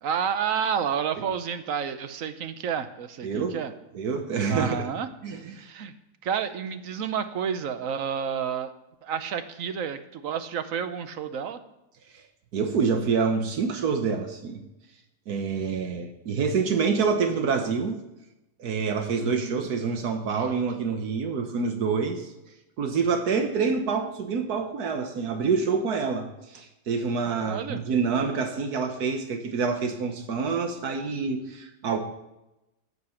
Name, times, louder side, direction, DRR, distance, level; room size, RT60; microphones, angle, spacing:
voice 1, 0.0-3.7 4.5-5.1 5.6-5.9 6.2-8.7 9.0-11.6 19.1-19.7 20.3-20.6 27.3-27.8, right 7 dB, 65° right, 10 dB, 1.1 m, -30 dB
voice 2, 3.2-3.6 3.9-4.9 5.2-5.6 12.5-14.6 15.3-18.0 18.6-22.3 22.8-32.0, right 5 dB, 85° right, 5 dB, 1.6 m, -27 dB
14.5 x 6.8 x 5.8 m, 0.93 s
omnidirectional pair, 1.6 m